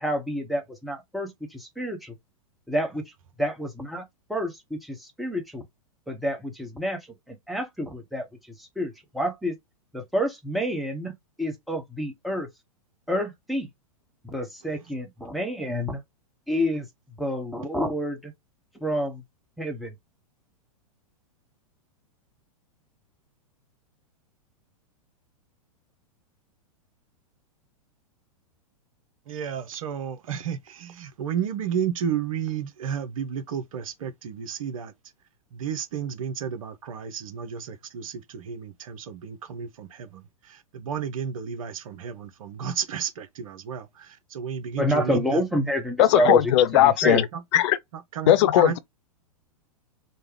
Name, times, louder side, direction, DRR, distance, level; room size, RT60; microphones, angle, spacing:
voice 1, 0.0-2.1 2.7-3.1 3.4-4.0 4.3-5.6 6.1-7.0 7.3-8.3 8.6-9.6 9.9-11.1 11.4-12.5 13.1-13.7 14.2-16.0 16.5-16.9 17.2-18.3 18.7-19.2 19.6-19.9 44.7-47.2, equal, ahead, 0.9 m, -28 dB
voice 2, 29.3-34.9 35.5-40.2 40.5-45.4 48.1-48.8, right 8 dB, 65° right, 0.7 m, -32 dB
voice 3, 46.0-47.2 47.5-47.8 48.3-48.8, left 12 dB, 50° left, 0.5 m, -18 dB
3.4 x 2.1 x 3.4 m
figure-of-eight pair, 100°, 19 cm